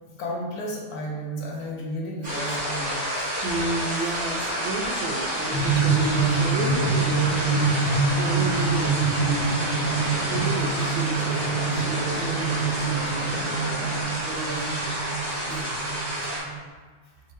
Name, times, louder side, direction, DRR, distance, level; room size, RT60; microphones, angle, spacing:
voice 1, 0.1-3.3 15.5-15.6, equal, 60° left, -2 dB, 1.1 m, -33 dB
sound 1, 2.2-16.4, equal, 25° right, 1.4 m, -29 dB
voice 2, 3.4-7.6 8.1-9.5 10.3-13.4 14.2-14.8 15.5-15.8, right 3 dB, 85° right, 3 dB, 1.3 m, -33 dB
sound 2, 4.3-14.0, equal, 40° right, 0.7 m, -36 dB
sound 3, 5.5-16.7, right 4 dB, 25° left, 1.0 m, -26 dB
4.6 x 3.1 x 3.1 m, 1.5 s
omnidirectional pair, 2.1 m